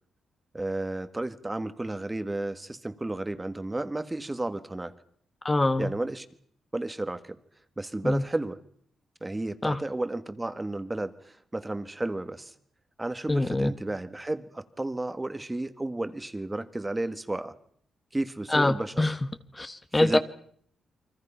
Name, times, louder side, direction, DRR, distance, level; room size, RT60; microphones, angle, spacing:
voice 1, 0.5-4.9 5.8-6.3 6.7-7.4 7.8-8.6 9.2-12.5 13.0-17.5 18.1-19.0 20.0-20.2, right 2 dB, 15° right, 11 dB, 1.6 m, -32 dB
voice 2, 5.4-5.9 8.0-8.2 9.6-9.8 13.3-13.7 18.5-19.1 19.5-20.2, left 2 dB, 15° left, 10 dB, 1.2 m, -24 dB
29.0 x 24.5 x 5.7 m, 0.62 s
cardioid pair, 120°, 0 cm